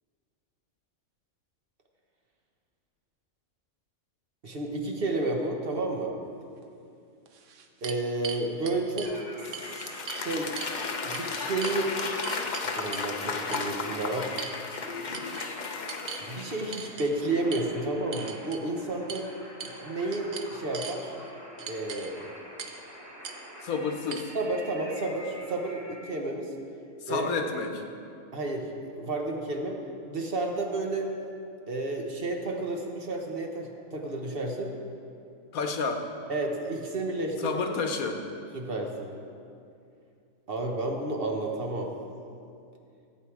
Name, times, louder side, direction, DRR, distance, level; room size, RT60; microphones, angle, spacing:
voice 1, 4.4-6.1 7.8-9.2 9.5-10.6 11.0-12.0 12.6-14.3 16.3-19.3 19.8-21.1 21.7-22.3 24.3-26.5 27.1-27.3 28.3-31.1 31.7-34.7 36.3-37.5 38.5-39.1 40.5-41.9, right 2 dB, 45° right, 2 dB, 1.2 m, -31 dB
sound 1, 6.6-6.7 7.3-9.1 9.5-10.2 10.6-10.8 11.1-11.8 12.2-13.1 13.5-13.7 14.4-14.8 15.1-15.5 15.9-16.3 16.7-17.1 17.5-17.6 18.1-18.6 19.1-19.2 19.6-19.8 20.1-21.0 21.6-22.1 22.6-22.8 23.2-23.4 24.1-24.2, right 7 dB, 65° right, 1.1 m, -39 dB
sound 2, 9.0-26.0, left 1 dB, 15° right, 2.2 m, -46 dB
Applause / Crowd, 9.1-16.9, left 4 dB, 45° left, 0.6 m, -34 dB
voice 2, 23.6-24.3 27.0-27.8 35.5-36.1 37.4-38.2, left 4 dB, 85° left, 5 dB, 1.4 m, -30 dB
15.5 x 8.4 x 4.8 m, 2.5 s
omnidirectional pair, 1.4 m